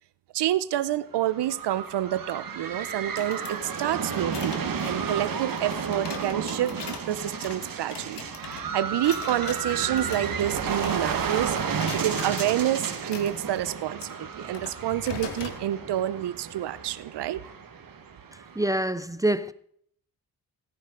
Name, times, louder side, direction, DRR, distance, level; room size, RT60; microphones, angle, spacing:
voice 1, 0.3-6.8 7.1-17.4, right 12 dB, 80° right, 0.7 m, -28 dB
sound 1, 1.1-18.8, right 6 dB, 55° right, 1.6 m, -32 dB
sound 2, 3.0-11.3 11.5-12.5 13.0-15.6, left 6 dB, 90° left, 1.7 m, -41 dB
voice 2, 18.6-19.5, right 1 dB, 10° right, 0.4 m, -25 dB
18.0 x 10.0 x 3.8 m
cardioid pair, 95°, 41 cm